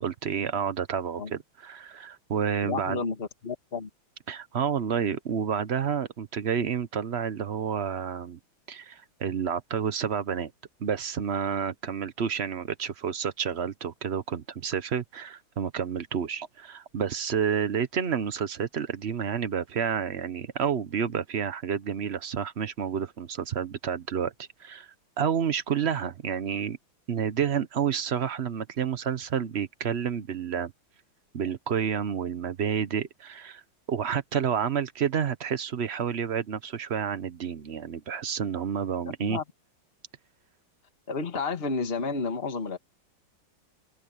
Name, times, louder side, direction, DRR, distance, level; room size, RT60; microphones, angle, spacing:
voice 1, 0.0-3.0 4.3-8.4 8.7-10.5 10.8-24.9 25.2-26.8 27.1-30.7 31.3-33.6 33.9-39.4, right 7 dB, 50° right, 0.8 m, -29 dB
voice 2, 2.6-3.9 39.2-39.4 41.1-42.8, left 4 dB, 30° left, 1.9 m, -31 dB
omnidirectional pair, 2.2 m